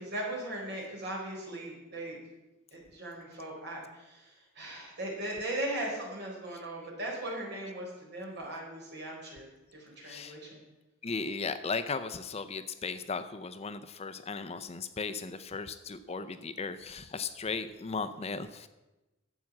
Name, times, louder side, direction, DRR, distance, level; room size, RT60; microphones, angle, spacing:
voice 1, 0.0-2.2 2.7-9.5 9.7-10.6, right 1 dB, 55° right, -2 dB, 4.2 m, -38 dB
voice 2, 10.0-10.4 11.0-18.7, left 4 dB, 30° left, 11 dB, 0.5 m, -36 dB
12.0 x 7.5 x 7.1 m, 1.0 s
head